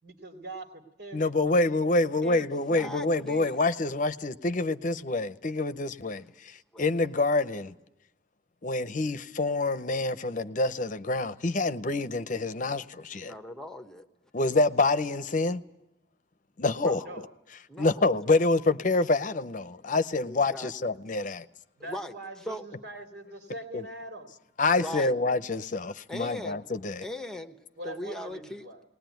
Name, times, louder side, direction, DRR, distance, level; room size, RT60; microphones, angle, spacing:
voice 1, 0.0-2.0 17.0-17.3 21.8-24.3 27.8-28.8, right 1 dB, 75° right, 2.9 m, -43 dB
voice 2, 1.1-7.7 8.6-13.3 14.3-15.6 16.6-17.1 17.8-21.5 23.7-23.8 24.6-27.0, left 2 dB, 45° left, 0.7 m, -27 dB
voice 3, 2.2-3.6 6.7-6.8 13.2-14.1 16.8-17.2 17.7-18.1 20.3-20.7 21.9-22.1 22.5-22.6 24.8-25.1 26.1-26.6 27.0-27.6 27.8-28.7, left 1 dB, 5° left, 1.0 m, -39 dB
20.0 x 19.5 x 9.2 m
head